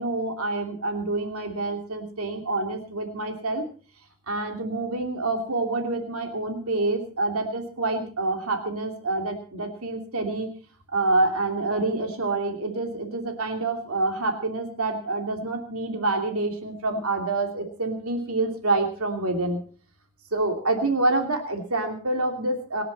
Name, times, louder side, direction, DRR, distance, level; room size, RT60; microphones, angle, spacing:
voice 1, 0.0-3.6 4.3-10.5 10.9-19.6 20.3-22.8, right 2 dB, 90° right, 4 dB, 2.9 m, -27 dB
26.0 x 10.0 x 4.2 m, 0.41 s
head